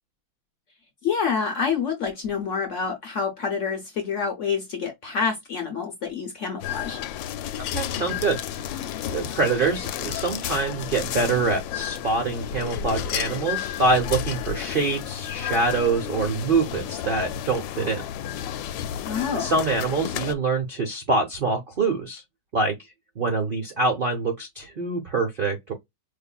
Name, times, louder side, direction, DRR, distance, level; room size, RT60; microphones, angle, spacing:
voice 1, 1.0-7.0 19.0-19.5, left 6 dB, 60° left, 0.8 m, -27 dB
sound 1, 6.6-20.3, left 10 dB, 75° left, 1.2 m, -32 dB
voice 2, 7.7-18.0 19.3-22.2 22.5-22.7 23.2-25.7, right 3 dB, 85° right, 0.4 m, -25 dB
4.7 x 2.5 x 2.2 m
omnidirectional pair, 2.1 m